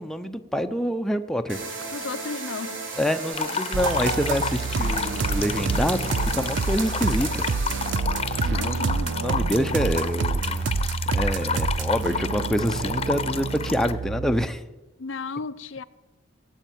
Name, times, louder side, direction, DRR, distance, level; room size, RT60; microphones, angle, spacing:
voice 1, 0.0-1.6 3.0-7.5 7.9-8.0 8.4-10.8 11.1-14.6, equal, ahead, 0.7 m, -27 dB
sound 1, 1.5-7.9, right 3 dB, 80° right, 4.4 m, -35 dB
voice 2, 1.9-2.8 8.5-9.2 15.0-15.8, left 4 dB, 75° left, 0.6 m, -34 dB
sound 2, 3.3-13.9, left 5 dB, 30° left, 0.9 m, -31 dB
sound 3, 3.7-14.5, right 4 dB, 65° right, 0.5 m, -28 dB
19.0 x 8.1 x 9.1 m
head